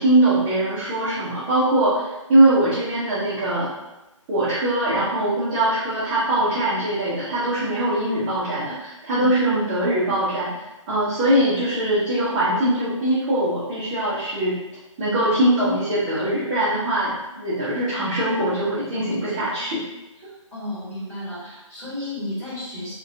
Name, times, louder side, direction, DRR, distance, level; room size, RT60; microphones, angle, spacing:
voice 1, 0.0-3.7 4.3-10.5 10.9-14.6 15.0-19.8, right 1 dB, 15° right, -10 dB, 0.3 m, -22 dB
voice 2, 20.2-22.9, left 1 dB, 10° left, -12 dB, 1.0 m, -33 dB
2.3 x 2.1 x 2.5 m, 1.0 s
figure-of-eight pair, 140°, 17 cm